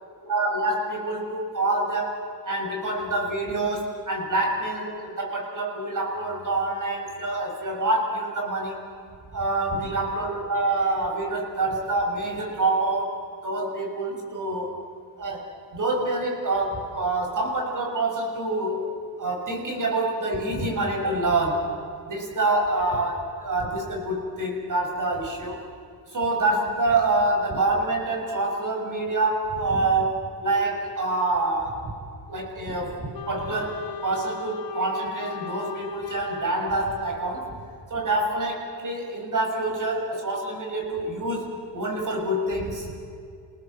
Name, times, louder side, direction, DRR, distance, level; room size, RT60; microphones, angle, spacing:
voice 1, 0.3-8.8 9.3-13.2 13.4-14.7 15.2-15.4 15.7-18.8 19.2-21.7 22.0-25.6 26.1-31.9 32.3-37.4 37.9-42.9, right 2 dB, 45° right, 1 dB, 6.6 m, -26 dB
Wind instrument woodwind instrument, 33.1-37.7, left 7 dB, 55° left, 1.5 m, -38 dB
29.5 x 18.5 x 7.7 m, 2.3 s
cardioid pair, 100°, 42 cm